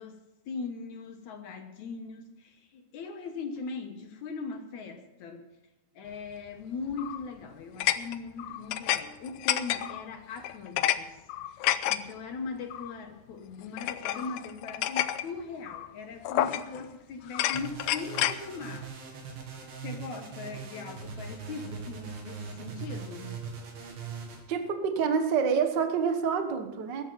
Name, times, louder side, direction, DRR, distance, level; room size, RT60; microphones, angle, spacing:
voice 1, 0.0-5.5 6.0-11.2 11.5-18.9 19.8-23.5, left 4 dB, 65° left, 5 dB, 2.3 m, -40 dB
sound 1, 6.9-7.3 7.8-9.0 9.3-10.0 10.4-11.0 11.3-12.0 12.7-12.9 13.8-15.3 15.7-15.9 16.3-16.9 17.3-18.4, left 13 dB, 90° left, 1.6 m, -29 dB
sound 2, 17.5-24.4, right 6 dB, 90° right, 4.3 m, -41 dB
voice 2, 24.5-27.0, right 6 dB, 65° right, 6 dB, 1.1 m, -27 dB
21.0 x 10.5 x 4.3 m, 1.0 s
omnidirectional pair, 4.1 m